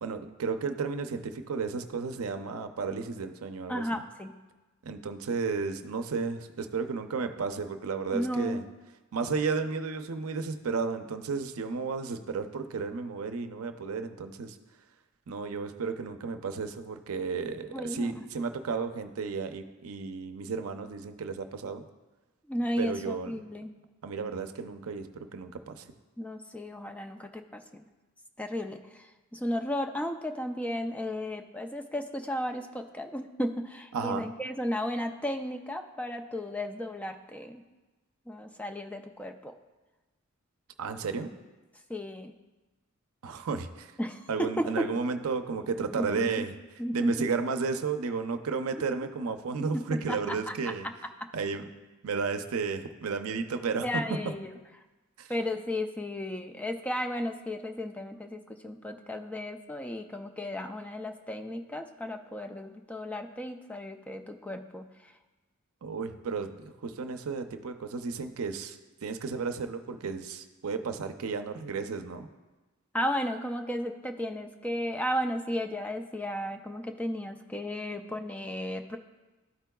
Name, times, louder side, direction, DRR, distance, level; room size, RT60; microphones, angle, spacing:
voice 1, 0.0-3.8 4.8-8.6 9.1-14.6 15.3-21.8 22.8-23.4 24.0-25.1 25.3-25.9 33.9-34.3 40.8-41.3 43.2-43.9 44.3-46.5 46.9-50.9 51.3-51.6 52.0-54.3 55.2-55.3 65.8-72.3, right 5 dB, 75° right, 8 dB, 0.5 m, -33 dB
voice 2, 3.7-4.3 8.1-8.6 17.7-18.2 22.5-23.7 26.2-27.8 28.4-29.1 29.3-37.6 38.3-39.5 41.9-42.3 44.0-44.9 46.0-46.5 46.8-47.3 49.6-50.7 51.2-51.3 53.8-54.5 55.3-64.9 72.9-79.0, equal, 5° left, 4 dB, 0.3 m, -34 dB
13.0 x 4.6 x 2.2 m, 1.2 s
head